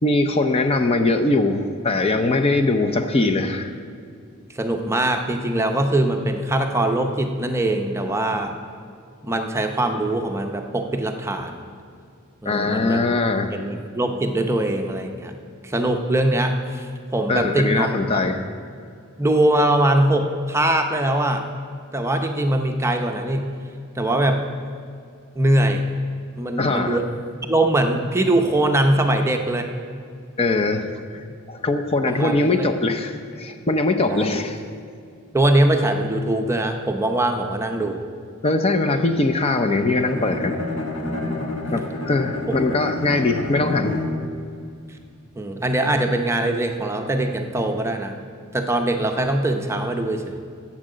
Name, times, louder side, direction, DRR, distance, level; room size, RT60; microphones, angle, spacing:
voice 1, 0.0-3.7 12.5-13.5 17.3-18.4 26.6-27.0 30.4-30.9 31.1-34.6 38.4-40.6 41.7-44.0, left 2 dB, 30° left, 6 dB, 0.6 m, -21 dB
voice 2, 4.5-8.5 9.2-11.6 12.4-13.0 13.5-15.3 15.6-16.9 17.1-18.2 19.2-21.5 21.9-23.5 24.0-24.4 25.3-25.8 26.3-27.1 27.4-29.7 32.1-32.7 34.1-34.4 35.3-38.0 42.5-42.6 45.4-48.2 48.5-50.4, right 1 dB, 15° right, 4 dB, 0.7 m, -22 dB
Bowed string instrument, 40.1-44.4, left 2 dB, 65° left, 1.4 m, -29 dB
10.0 x 7.4 x 7.9 m, 2.3 s
head